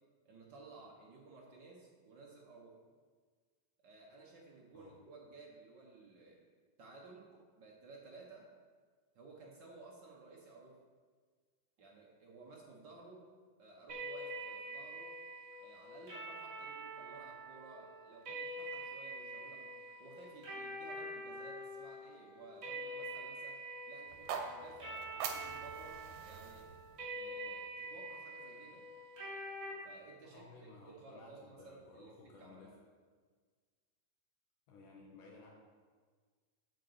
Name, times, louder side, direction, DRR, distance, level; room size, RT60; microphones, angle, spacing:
voice 1, 0.2-2.8 3.8-6.4 6.8-8.4 9.1-10.8 11.8-13.3 13.6-15.1 15.6-19.7 20.0-23.6 23.9-26.7 27.1-28.9 29.8-32.1 32.4-32.8, right 3 dB, 60° right, -2 dB, 1.2 m, -56 dB
sound 1, 13.9-29.7, right 1 dB, 25° right, 2.5 m, -46 dB
sound 2, 24.1-28.2, right 6 dB, 80° right, 2.5 m, -45 dB
voice 2, 30.2-32.7 34.7-35.5, left 3 dB, 75° left, -2 dB, 2.7 m, -57 dB
7.9 x 6.8 x 6.9 m, 1.6 s
omnidirectional pair, 3.9 m